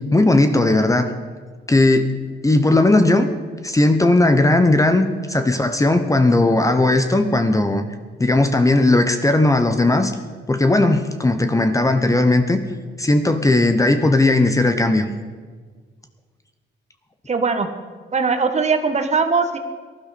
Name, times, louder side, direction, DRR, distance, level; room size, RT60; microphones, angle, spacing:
voice 1, 0.1-1.1 1.7-2.1 2.4-3.3 3.6-7.8 8.2-10.1 10.5-12.6 13.0-15.1, left 2 dB, 15° left, 8 dB, 0.9 m, -17 dB
voice 2, 17.3-17.7 18.1-19.6, right 4 dB, 35° right, 7 dB, 1.4 m, -20 dB
18.5 x 12.0 x 4.3 m, 1.5 s
cardioid pair, 90°, 20 cm